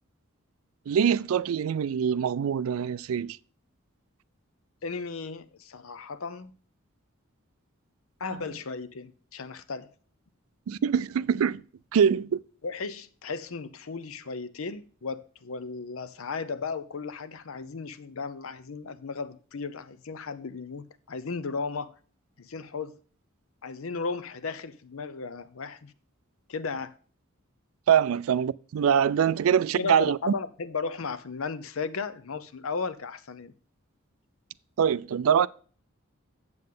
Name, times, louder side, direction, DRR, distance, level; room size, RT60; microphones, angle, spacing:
voice 1, 0.9-3.4 10.7-11.6 11.9-12.4 27.9-30.2 34.8-35.5, right 8 dB, 85° right, 0.4 m, -24 dB
voice 2, 4.8-6.5 8.2-9.9 12.6-21.9 22.4-23.0 23.6-25.9 26.5-26.9 29.8-33.5, left 4 dB, 80° left, 0.7 m, -35 dB
7.7 x 7.6 x 3.7 m
head